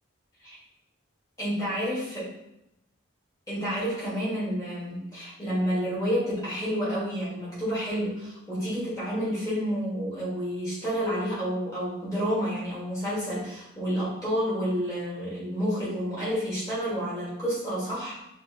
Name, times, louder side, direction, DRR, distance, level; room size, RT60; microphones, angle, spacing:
voice 1, 1.4-2.2 3.5-18.1, equal, 15° left, -8 dB, 1.6 m, -29 dB
6.1 x 2.7 x 2.8 m, 0.86 s
head